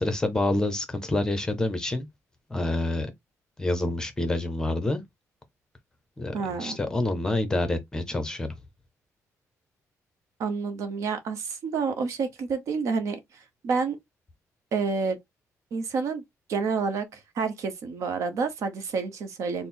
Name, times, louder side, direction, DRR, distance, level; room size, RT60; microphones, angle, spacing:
voice 1, 0.0-2.1 2.5-3.1 3.6-5.0 6.2-8.5, left 2 dB, 10° left, 0.7 m, -27 dB
voice 2, 6.3-6.8 10.4-14.0 14.7-15.2 15.7-16.2 16.5-19.7, right 5 dB, 60° right, 0.8 m, -29 dB
4.3 x 2.0 x 3.7 m
cardioid pair, 180°, 6 cm